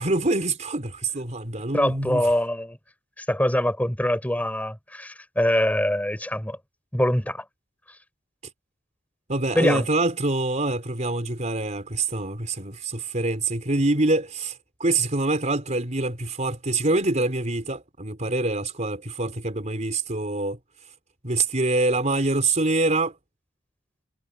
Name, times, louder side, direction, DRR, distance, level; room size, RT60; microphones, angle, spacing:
voice 1, 0.0-2.2 9.3-20.6 21.2-23.2, right 2 dB, 40° right, 4.1 m, -25 dB
voice 2, 1.7-2.8 3.2-6.6 6.9-7.4 9.5-9.8, left 1 dB, 10° left, 4.1 m, -24 dB
head